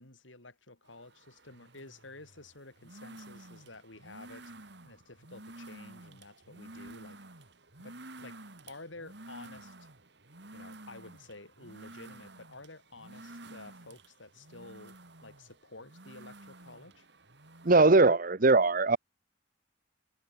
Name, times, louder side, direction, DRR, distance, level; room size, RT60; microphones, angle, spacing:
voice 1, 0.0-4.5 4.8-7.2 7.8-9.9 10.5-17.1, left 2 dB, 85° left, 6.2 m, -51 dB
sound 1, 0.9-17.8, right 2 dB, 65° right, 3.2 m, -51 dB
voice 2, 17.6-19.0, right 3 dB, 45° right, 0.9 m, -21 dB
head